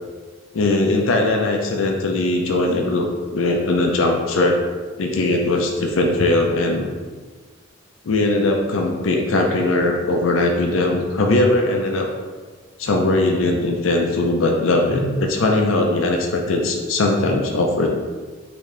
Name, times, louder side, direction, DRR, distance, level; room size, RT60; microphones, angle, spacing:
voice 1, 0.5-3.1 3.3-4.6 5.0-6.9 8.0-12.1 12.8-17.9, left 2 dB, 90° left, 1 dB, 0.5 m, -20 dB
4.1 x 2.7 x 3.2 m, 1.4 s
head